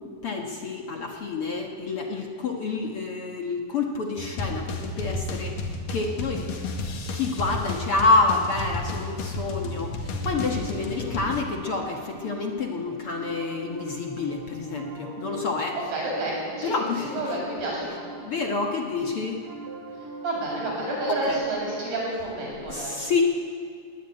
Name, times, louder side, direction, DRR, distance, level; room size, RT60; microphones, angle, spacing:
voice 1, 0.2-6.5 7.1-15.8 16.6-17.1 18.2-19.4 21.1-21.4 22.7-23.2, left 3 dB, 50° left, 1 dB, 2.0 m, -28 dB
sound 1, 4.2-11.4, left 2 dB, 70° left, 3.6 m, -32 dB
Piano, 9.5-22.0, right 2 dB, 55° right, 3.4 m, -41 dB
voice 2, 10.6-11.1 15.9-16.7 17.0-17.9 20.2-23.0, right 2 dB, 80° right, -3 dB, 9.7 m, -30 dB
20.5 x 19.0 x 9.9 m, 2.2 s
omnidirectional pair, 4.0 m